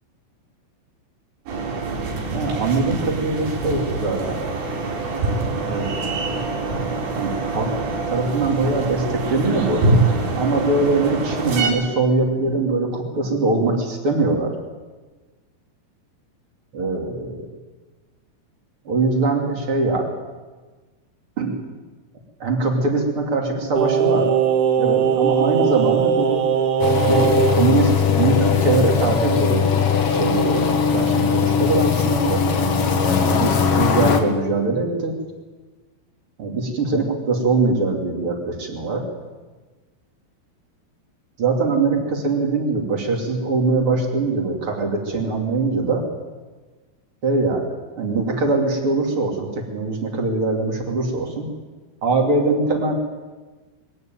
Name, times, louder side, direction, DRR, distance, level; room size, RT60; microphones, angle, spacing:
sound 1, 1.5-11.7, right 3 dB, 80° right, 6.6 m, -24 dB
voice 1, 2.3-4.4 5.6-6.4 7.1-7.7 8.1-9.8 10.4-14.5 16.7-17.4 18.8-20.1 21.4-21.6 22.4-24.3 24.8-26.5 27.0-29.7 30.1-32.4 33.2-35.1 36.4-39.0 41.4-46.0 47.2-47.7 48.0-51.5 52.0-52.9, right 3 dB, 35° right, 2 dB, 3.0 m, -22 dB
Singing, 23.8-27.6 27.9-28.0, right 7 dB, 60° right, 3.6 m, -19 dB
sound 2, 26.8-34.2, left 6 dB, 85° left, 1.3 m, -19 dB
22.0 x 15.5 x 9.3 m, 1.3 s
omnidirectional pair, 5.5 m